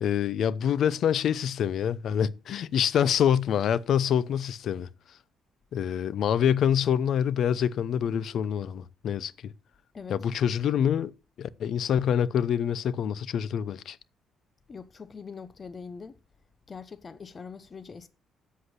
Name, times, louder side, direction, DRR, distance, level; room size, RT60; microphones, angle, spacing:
voice 1, 0.0-4.9 5.7-9.5 10.1-11.1 11.4-14.0, left 9 dB, 65° left, 0.7 m, -26 dB
voice 2, 9.9-10.3 14.7-16.2 16.7-18.1, left 5 dB, 35° left, 0.9 m, -42 dB
8.0 x 8.0 x 8.1 m
cardioid pair, 105°, 0 cm